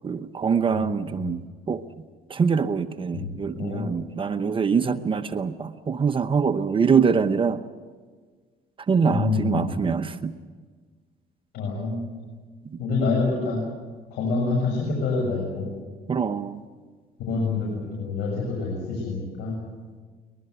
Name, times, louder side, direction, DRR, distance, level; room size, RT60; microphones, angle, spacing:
voice 1, 0.0-1.8 2.3-7.6 8.9-10.3 12.7-12.8 16.1-16.6, right 6 dB, 30° right, 9 dB, 0.9 m, -24 dB
voice 2, 9.0-9.8 11.5-12.0 12.8-13.6 14.1-15.7 17.2-17.7 18.0-19.6, left 3 dB, 80° left, -2 dB, 6.7 m, -26 dB
23.0 x 21.0 x 8.0 m, 1.5 s
cardioid pair, 110°, 17 cm